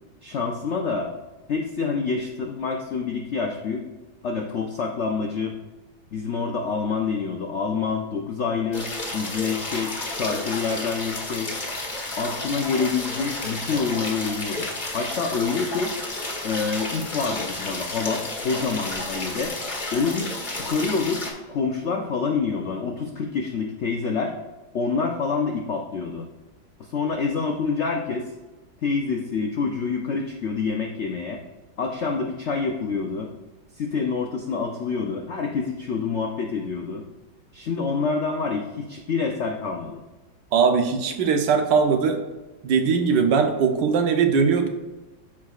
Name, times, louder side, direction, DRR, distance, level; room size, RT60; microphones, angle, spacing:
voice 1, 0.2-1.1 1.5-3.8 4.2-5.6 6.1-11.5 12.2-14.7 14.9-15.9 16.4-19.5 19.9-21.2 21.5-24.3 24.7-26.3 26.8-28.3 28.8-31.4 31.8-33.3 33.7-37.0 37.5-40.0, left 5 dB, 70° left, 2 dB, 0.6 m, -27 dB
sound 1, 8.7-21.3, left 2 dB, 30° left, 1.2 m, -31 dB
voice 2, 40.5-42.2 42.6-44.7, right 5 dB, 75° right, 5 dB, 1.4 m, -20 dB
13.0 x 4.8 x 2.4 m, 1.2 s
omnidirectional pair, 2.0 m